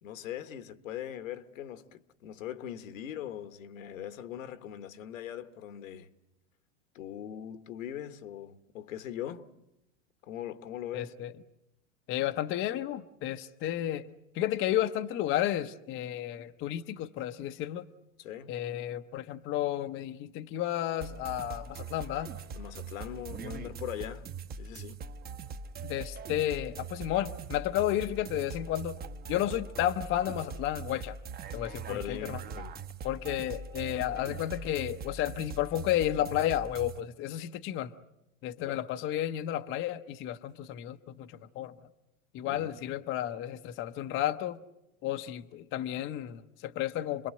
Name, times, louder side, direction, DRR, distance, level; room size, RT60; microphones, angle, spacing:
voice 1, 0.0-6.1 6.9-9.5 10.2-11.1 18.2-18.6 22.5-24.3 24.6-25.0 31.9-32.8 38.6-38.8 42.4-42.7, left 10 dB, 75° left, 1.7 m, -41 dB
voice 2, 10.9-11.3 12.1-14.1 14.3-17.9 18.5-22.3 25.8-29.0 29.3-31.2 31.5-32.4 33.0-37.9 38.4-41.7 42.3-44.6 45.0-47.3, left 12 dB, 30° left, 0.9 m, -32 dB
sound 1, 21.0-37.0, right 5 dB, 25° right, 1.1 m, -42 dB
28.0 x 21.5 x 7.8 m
hypercardioid pair, 125°, 40 cm